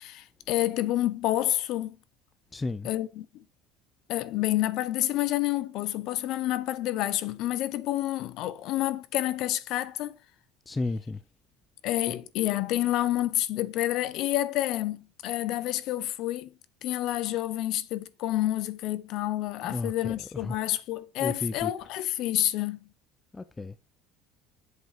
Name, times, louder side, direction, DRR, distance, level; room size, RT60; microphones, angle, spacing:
voice 1, 0.0-2.0 2.8-3.4 4.1-10.2 11.8-16.5 16.8-22.8, left 14 dB, 55° left, 0.8 m, -29 dB
voice 2, 2.5-2.9 10.7-11.3 19.6-20.6 21.2-21.9 23.3-23.8, left 3 dB, 10° left, 0.4 m, -33 dB
7.8 x 5.4 x 5.0 m
cardioid pair, 165°, 0 cm